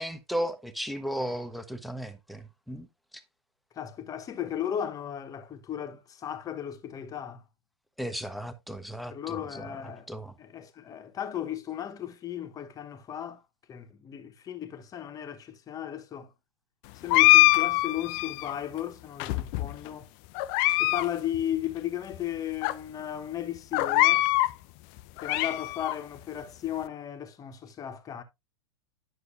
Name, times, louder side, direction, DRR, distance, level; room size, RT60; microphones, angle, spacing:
voice 1, 0.0-2.9 8.0-10.3, equal, ahead, 0.8 m, -35 dB
voice 2, 3.8-7.4 9.1-10.1 10.4-13.4 13.7-16.3 17.0-20.1 20.8-24.3 25.2-28.2, left 10 dB, 25° left, 1.0 m, -35 dB
sound 1, 17.1-18.5 19.2-19.9 20.4-21.1 21.3-21.4 22.1-22.2 22.6-22.7 23.7-24.5 25.0-26.0, left 18 dB, 40° left, 0.4 m, -23 dB
9.4 x 6.4 x 2.5 m
figure-of-eight pair, 100°, 15 cm